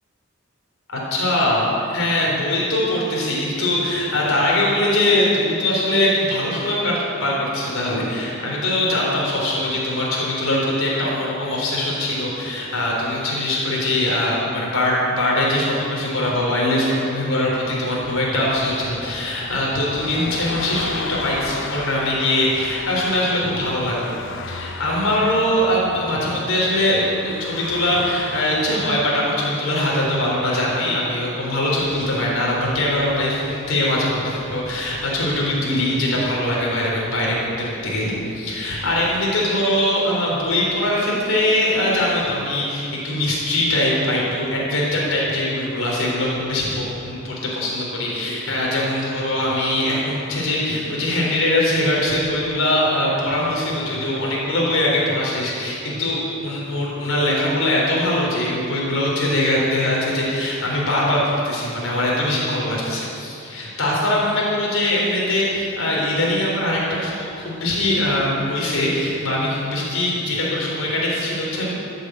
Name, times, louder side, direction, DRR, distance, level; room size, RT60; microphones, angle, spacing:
voice 1, 0.9-24.1 24.5-71.7, left 1 dB, 90° left, -4 dB, 4.0 m, -22 dB
sound 1, 18.4-29.2, left 4 dB, 65° left, 0.8 m, -35 dB
14.0 x 8.4 x 8.1 m, 2.6 s
head